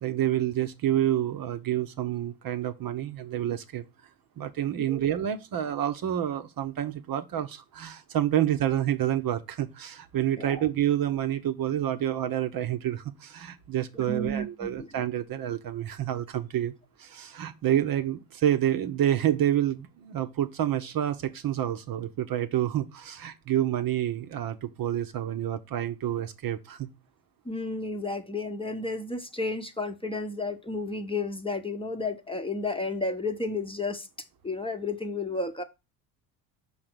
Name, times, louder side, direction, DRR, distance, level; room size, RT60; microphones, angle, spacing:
voice 1, 0.0-3.8 4.4-16.7 17.0-26.9, right 11 dB, 45° right, 0.9 m, -28 dB
voice 2, 14.1-14.9 27.5-34.1 34.4-35.6, left 2 dB, 10° left, 0.9 m, -32 dB
5.9 x 3.9 x 6.0 m
hypercardioid pair, 70°, 49 cm